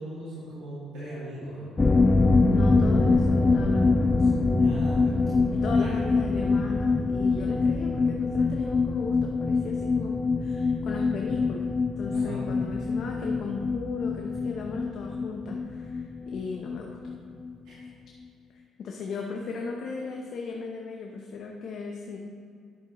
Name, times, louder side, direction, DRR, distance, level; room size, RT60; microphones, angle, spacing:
voice 1, 0.0-1.8 4.5-5.2 5.7-5.9 12.1-12.5 17.6-17.9, right 1 dB, 90° right, -10 dB, 2.2 m, -39 dB
sound 1, 1.8-17.2 17.4-17.5 17.8-17.9, left 3 dB, 20° left, 0.4 m, -24 dB
voice 2, 2.4-4.3 5.5-17.0 18.5-22.2, left 4 dB, 60° left, 0 dB, 0.8 m, -36 dB
10.5 x 7.5 x 3.1 m, 2.4 s
cardioid pair, 90°, 0 cm